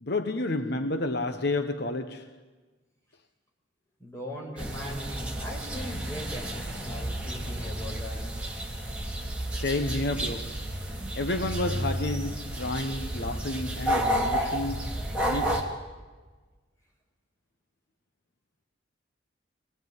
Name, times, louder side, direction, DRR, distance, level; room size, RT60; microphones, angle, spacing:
voice 1, 0.0-2.4 9.5-10.7 11.1-15.8, left 2 dB, 60° left, 1.0 m, -31 dB
voice 2, 4.0-8.2, left 1 dB, 15° left, 5.9 m, -39 dB
sound 1, 4.6-15.6, right 1 dB, 5° right, 3.2 m, -31 dB
25.0 x 19.5 x 9.4 m
head